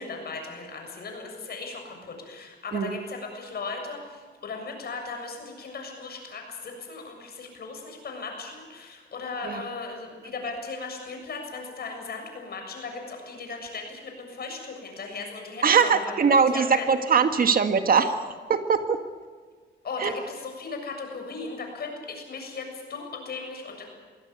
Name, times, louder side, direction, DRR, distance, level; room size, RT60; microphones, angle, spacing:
voice 1, 0.0-16.2 16.5-16.9 18.0-18.1 19.8-23.9, left 4 dB, 50° left, 3 dB, 7.3 m, -37 dB
voice 2, 15.6-18.1 18.5-19.0 20.0-20.1, right 6 dB, 45° right, 8 dB, 1.7 m, -21 dB
23.0 x 16.5 x 9.7 m, 1.6 s
cardioid pair, 90°, 20 cm